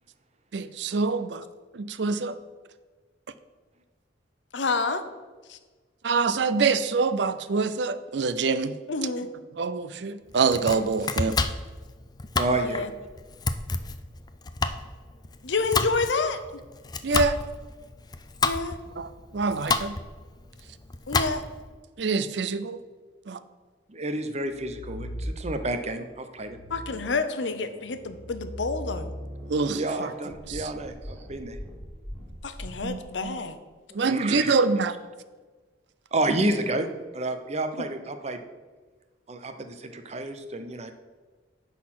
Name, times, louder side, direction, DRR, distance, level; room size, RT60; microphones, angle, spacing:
voice 1, 0.5-1.4 1.7-2.4 6.0-8.7 9.6-11.4 17.0-17.4 19.0-20.0 22.0-22.8 23.3-23.4 29.5-30.1 30.5-30.7 32.8-33.4 33.9-34.9, right 4 dB, 70° right, 13 dB, 0.5 m, -25 dB
voice 2, 4.5-5.0 5.5-5.6 8.9-9.3 12.5-12.9 15.4-16.6 18.4-18.8 21.1-21.5 26.7-29.1 32.4-33.6 37.8-37.9, left 3 dB, 80° left, 10 dB, 0.8 m, -29 dB
Domestic sounds home sounds, 10.3-21.7, left 3 dB, 20° left, 0.5 m, -30 dB
voice 3, 12.4-12.8 23.9-26.6 29.7-31.6 34.0-34.5 36.1-36.9 37.1-38.4 39.3-40.9, right 2 dB, 35° right, 8 dB, 0.8 m, -30 dB
sound 1, 24.4-25.8 26.3-33.3, equal, 5° left, 2.1 m, -40 dB
10.5 x 4.1 x 7.6 m, 1.3 s
head